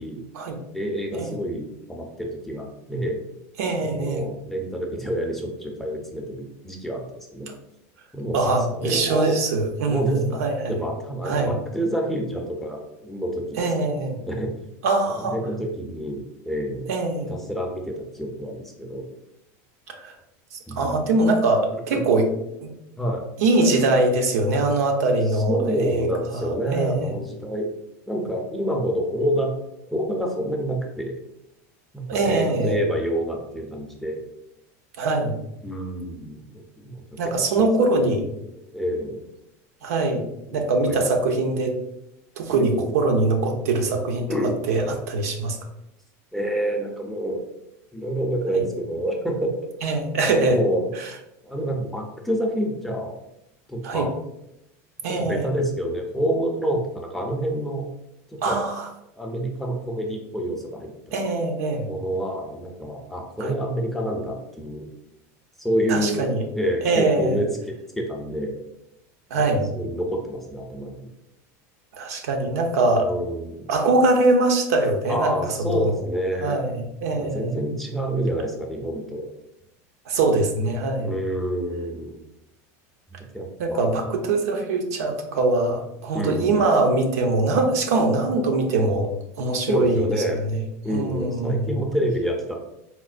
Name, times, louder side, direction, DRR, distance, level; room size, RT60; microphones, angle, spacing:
voice 1, 0.7-3.2 3.8-7.6 8.1-8.4 8.7-9.4 9.8-10.4 10.7-13.4 13.8-13.9 14.3-14.7 15.2-16.9 17.3-19.0 20.7-21.2 21.9-22.1 23.0-23.3 25.3-27.7 28.1-29.5 29.9-31.2 31.9-34.2 35.6-37.0 37.4-37.7 38.7-39.2 40.5-41.0 42.5-42.9 44.3-44.6 46.3-47.4 47.9-49.5 50.5-50.9 51.4-53.2 53.7-54.1 55.1-57.9 58.3-58.6 59.2-61.2 61.8-64.9 65.6-67.5 68.0-68.6 69.7-71.1 73.0-73.6 75.1-76.6 77.2-79.3 81.0-82.2 83.3-84.1 86.1-86.6 89.6-90.5 90.8-92.6, right 1 dB, 5° left, 0 dB, 0.5 m, -28 dB
voice 2, 3.6-4.3 8.3-10.7 11.2-11.6 13.6-14.2 14.8-15.4 16.9-17.3 19.9-20.2 20.5-22.3 22.6-22.7 23.4-26.1 26.3-27.1 32.1-32.8 35.0-35.4 37.2-38.2 39.8-40.2 40.5-41.7 42.4-44.3 44.7-45.6 48.5-48.6 49.8-50.6 51.0-51.1 53.8-54.1 55.0-55.5 58.4-58.9 61.1-61.9 63.4-63.6 65.9-66.4 66.8-67.4 69.3-69.7 72.0-73.1 73.7-76.0 76.4-77.6 80.1-81.1 83.6-89.1 89.4-90.1 90.5-90.6 90.9-91.7, right 2 dB, 90° right, 3 dB, 0.6 m, -22 dB
4.2 x 2.1 x 2.4 m, 0.84 s
supercardioid pair, 135°, 8 cm